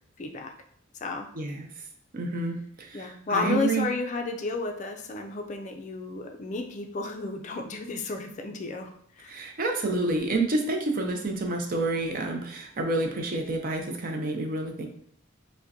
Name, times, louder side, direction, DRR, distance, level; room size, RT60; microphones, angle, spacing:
voice 1, 0.2-0.5 1.0-1.3 2.9-8.9 9.2-9.4, left 3 dB, 35° left, 4 dB, 0.4 m, -32 dB
voice 2, 1.3-1.7 2.1-3.9 9.2-14.9, right 2 dB, 45° right, 3 dB, 0.5 m, -29 dB
4.9 x 2.1 x 2.6 m, 0.65 s
head